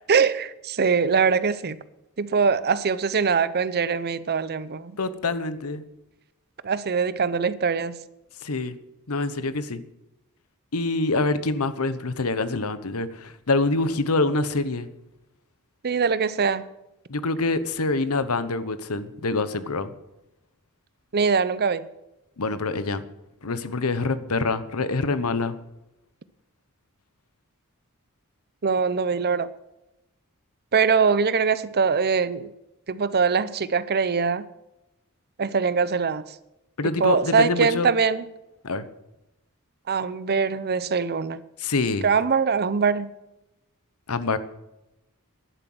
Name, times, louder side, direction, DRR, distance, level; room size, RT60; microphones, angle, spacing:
voice 1, 0.1-1.8 2.2-5.0 6.6-8.0 15.8-16.7 21.1-21.9 28.6-29.5 30.7-32.5 32.9-34.4 35.4-36.2 37.0-38.3 39.9-41.4 42.0-43.1, right 5 dB, 45° right, 0.7 m, -22 dB
voice 2, 5.0-5.8 8.4-8.7 9.1-9.8 10.7-14.9 17.1-19.9 22.4-23.0 23.4-25.6 36.8-37.9 38.6-38.8 41.6-42.1 44.1-44.4, left 3 dB, 85° left, 1.0 m, -25 dB
11.0 x 10.0 x 7.8 m
head